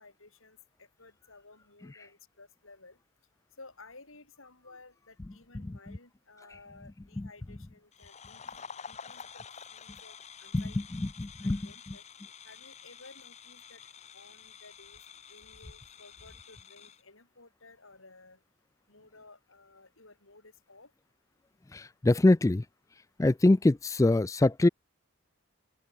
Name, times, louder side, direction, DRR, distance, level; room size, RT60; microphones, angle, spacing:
voice 1, 0.0-3.0 3.6-9.4 9.7-10.8 11.4-12.0 12.4-13.8 14.1-15.0 15.3-18.4 18.9-20.9, left 3 dB, 75° left, 6.1 m, -55 dB
sound 1, 7.9-17.0, left 7 dB, 30° left, 1.1 m, -49 dB
voice 2, 10.9-11.6 11.9-12.0 21.7-22.7 23.2-24.7, left 2 dB, 15° left, 0.3 m, -24 dB
open air
head